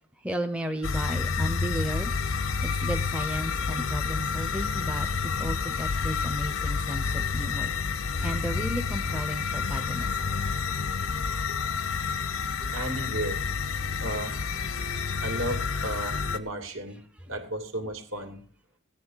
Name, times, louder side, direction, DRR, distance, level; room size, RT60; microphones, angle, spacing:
voice 1, 0.2-2.1 2.6-5.1 5.4-7.7 8.2-10.1, equal, 5° right, 6 dB, 0.6 m, -34 dB
sound 1, 0.8-16.4, left 5 dB, 80° left, 0.9 m, -29 dB
voice 2, 12.2-13.4 14.0-14.4 15.2-17.0 17.3-18.4, right 1 dB, 70° right, 5 dB, 2.3 m, -34 dB
15.5 x 10.5 x 3.9 m, 0.41 s
head